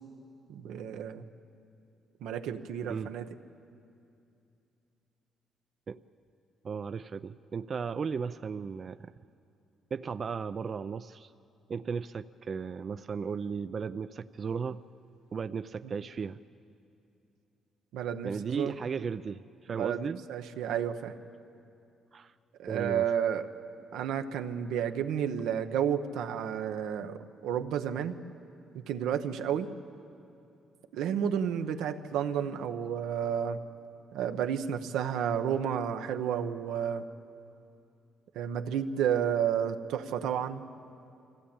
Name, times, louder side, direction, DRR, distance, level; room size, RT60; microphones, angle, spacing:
voice 1, 0.5-1.2 2.2-3.3 15.8-15.9 17.9-18.7 19.7-21.1 22.6-23.5 23.9-28.1 28.7-29.7 30.9-33.6 34.1-37.0 38.3-40.6, right 8 dB, 90° right, 7 dB, 0.9 m, -31 dB
voice 2, 6.6-9.1 9.9-11.3 11.7-14.8 15.3-16.4 18.2-20.2 22.1-22.3 22.7-23.1, right 6 dB, 45° right, 11 dB, 0.4 m, -35 dB
24.5 x 15.5 x 8.8 m, 2.6 s
cardioid pair, 90°, 0 cm